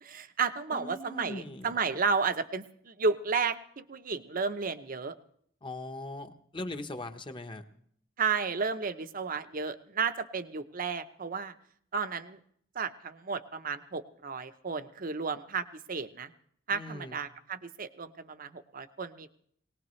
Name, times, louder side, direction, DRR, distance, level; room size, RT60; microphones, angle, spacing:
voice 1, 0.0-5.1 8.2-11.5 11.9-12.4 12.8-16.3 16.7-19.3, right 5 dB, 45° right, 10 dB, 0.8 m, -33 dB
voice 2, 0.7-1.7 5.6-7.6 16.7-17.2, left 1 dB, 25° left, 7 dB, 1.0 m, -40 dB
21.5 x 18.5 x 3.2 m, 0.65 s
head